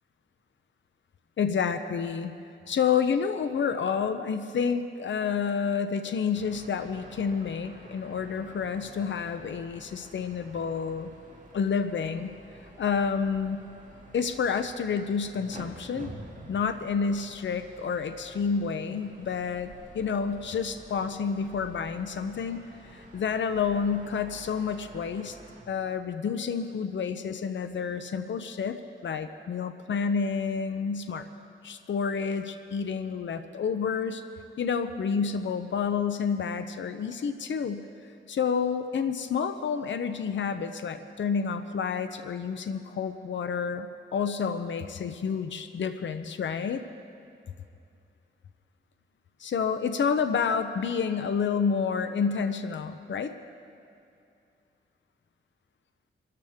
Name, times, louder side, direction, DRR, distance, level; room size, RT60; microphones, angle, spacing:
voice 1, 1.4-2.3 2.7-11.1 11.5-12.3 12.8-13.6 14.1-16.1 16.5-25.4 25.7-28.8 29.0-31.3 31.6-34.2 34.6-37.8 38.3-46.8 49.4-53.3, left 6 dB, 65° left, 9 dB, 0.7 m, -29 dB
sound 1, 6.3-25.6, right 2 dB, 40° right, 2.6 m, -50 dB
24.0 x 13.5 x 3.6 m, 2.6 s
wide cardioid pair, 100°, 20 cm